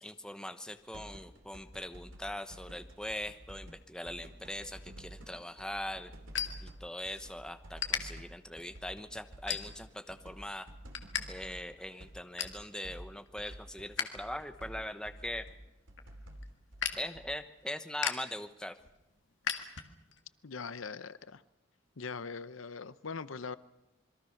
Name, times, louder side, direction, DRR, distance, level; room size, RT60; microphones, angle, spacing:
voice 1, 0.0-6.1 6.6-10.7 11.3-15.5 17.0-18.8, left 1 dB, 5° left, 1.0 m, -41 dB
sound 1, 0.9-3.8 4.1-12.2 12.4-17.3, right 1 dB, 80° right, 3.0 m, -50 dB
sound 2, 5.2-7.3 7.6-8.0 8.6-8.8 9.3-10.0 10.4-11.2 11.5-11.6 12.0-12.6 13.1-14.1 14.4-20.2, left 8 dB, 65° left, 1.9 m, -38 dB
voice 2, 20.4-21.4 22.0-23.6, left 5 dB, 85° left, 0.8 m, -41 dB
27.0 x 22.0 x 5.9 m
head